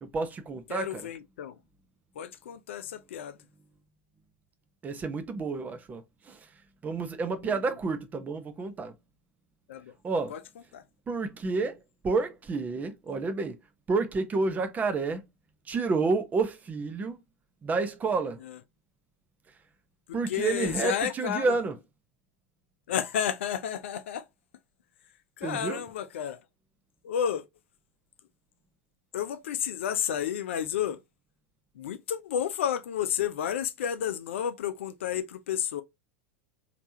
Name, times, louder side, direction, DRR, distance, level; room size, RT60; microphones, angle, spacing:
voice 1, 0.0-1.1 4.8-6.0 6.3-6.4 6.8-8.9 10.0-10.4 11.1-11.8 12.0-13.6 13.9-15.2 15.7-17.2 17.6-18.4 20.1-21.8 25.4-25.8, right 4 dB, 20° right, 0.8 m, -29 dB
voice 2, 0.7-1.5 2.2-3.4 7.4-7.5 9.7-9.9 10.3-10.4 10.7-10.8 18.5-18.6 20.1-21.5 22.9-24.2 25.4-26.4 27.0-27.4 29.1-31.0 31.8-35.8, left 9 dB, 65° left, 0.5 m, -31 dB
3.3 x 2.9 x 2.7 m
figure-of-eight pair, 90°, 7 cm